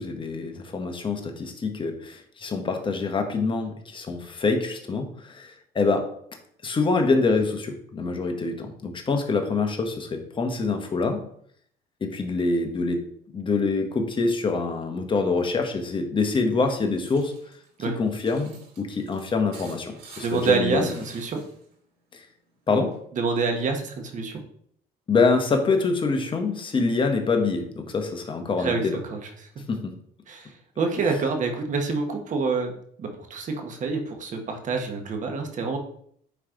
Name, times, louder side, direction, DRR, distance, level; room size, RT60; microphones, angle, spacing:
voice 1, 0.0-6.1 6.6-11.3 12.0-13.1 13.3-17.3 17.9-21.0 22.1-22.3 22.7-23.0 25.1-29.0 29.7-29.9, left 4 dB, 30° left, 4 dB, 1.2 m, -25 dB
sound 1, 16.5-21.8 22.1-23.0, right 4 dB, 80° right, 2.8 m, -49 dB
voice 2, 20.2-21.4 23.1-24.4 28.6-29.5 30.3-35.8, right 4 dB, 50° right, 4 dB, 1.3 m, -27 dB
9.5 x 3.2 x 3.9 m, 0.65 s
cardioid pair, 110°, 17 cm